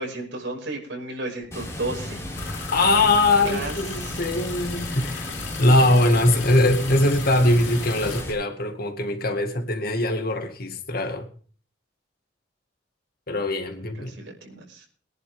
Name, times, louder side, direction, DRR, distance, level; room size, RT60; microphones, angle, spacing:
voice 1, 0.0-2.2 3.4-4.4 14.0-14.9, right 2 dB, 75° right, 6.3 m, -33 dB
Water, 1.5-8.3, left 1 dB, 15° left, 5.5 m, -34 dB
sound 1, 2.3-8.2, left 7 dB, 80° left, 3.2 m, -38 dB
voice 2, 2.7-11.3 13.3-14.2, left 1 dB, 55° left, 2.0 m, -21 dB
23.0 x 10.5 x 3.7 m
head